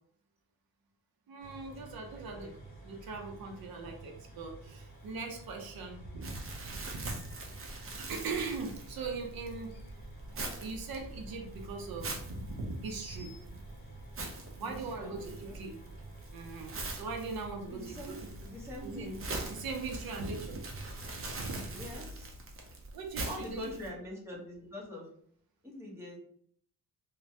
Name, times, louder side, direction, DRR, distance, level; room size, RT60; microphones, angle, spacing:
voice 1, 1.3-2.5 2.8-7.1 7.4-9.8 10.3-13.6 14.6-15.8 16.3-18.3 18.8-19.1 19.5-21.8 22.9-23.7, right 3 dB, 80° right, 3 dB, 0.6 m, -40 dB
sound 1, 1.4-21.0, right 2 dB, 25° left, 1.4 m, -51 dB
sound 2, 1.9-2.0 2.4-2.5 3.1-3.4 3.8-3.9 5.4-5.5 6.2-8.9 9.5-10.8 11.1-11.5 12.8-13.4, left 1 dB, 45° left, 0.6 m, -59 dB
voice 2, 2.1-2.5 14.6-15.7 17.7-19.2 21.7-22.4 23.3-25.1 25.6-26.2, left 1 dB, 5° right, -4 dB, 1.0 m, -45 dB
Crumpling crinkling, 6.2-23.9, right 2 dB, 40° right, 0.6 m, -44 dB
3.1 x 2.2 x 2.7 m, 0.62 s
cardioid pair, 115°, 35 cm